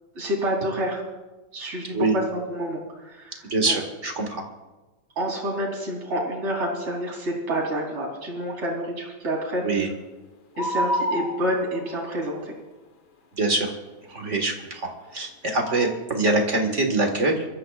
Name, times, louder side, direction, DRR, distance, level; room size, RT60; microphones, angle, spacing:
voice 1, 0.1-1.0 1.5-2.2 2.5-3.8 5.2-9.6 10.6-12.5, equal, 55° right, -1 dB, 4.5 m, -28 dB
voice 2, 3.5-4.4 9.6-9.9 13.4-13.7 14.1-17.5, right 2 dB, 30° right, 3 dB, 1.6 m, -24 dB
sound 1, 10.6-12.0 15.7-15.9, equal, 50° left, 1.9 m, -27 dB
25.0 x 14.0 x 2.5 m, 1.2 s
omnidirectional pair, 3.4 m